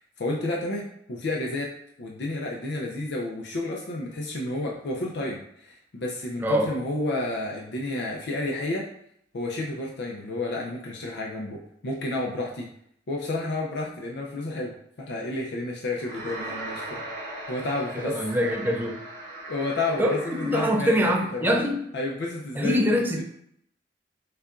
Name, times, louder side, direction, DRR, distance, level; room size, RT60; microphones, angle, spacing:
voice 1, 0.2-1.7 2.0-8.9 9.3-12.7 13.1-17.0 17.5-18.2 19.5-21.6 21.9-23.2, left 2 dB, 65° left, -2 dB, 0.5 m, -31 dB
voice 2, 6.4-6.7 17.9-19.0 20.0-20.2 20.4-21.8 22.5-23.2, equal, 10° right, 1 dB, 0.5 m, -24 dB
sound 1, 16.0-21.4, right 1 dB, 60° right, 0.8 m, -39 dB
6.5 x 2.3 x 2.5 m, 0.71 s
head